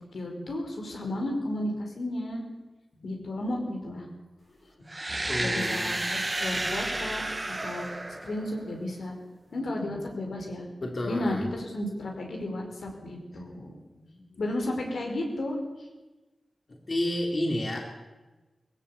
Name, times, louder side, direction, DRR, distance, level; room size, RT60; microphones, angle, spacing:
voice 1, 0.1-2.4 3.0-4.1 5.4-6.0 6.4-7.8 8.2-9.1 9.5-10.7 11.0-13.8 14.4-15.6, left 1 dB, 85° left, 1 dB, 4.9 m, -33 dB
voice 2, 2.9-3.4 5.3-5.9 9.5-9.9 10.8-11.5 13.9-14.4 16.9-17.8, left 1 dB, 45° left, 1 dB, 3.5 m, -32 dB
sound 1, 4.9-8.8, right 2 dB, 25° right, 1.8 m, -31 dB
20.5 x 15.5 x 8.5 m, 1.2 s
wide cardioid pair, 105°, 0 cm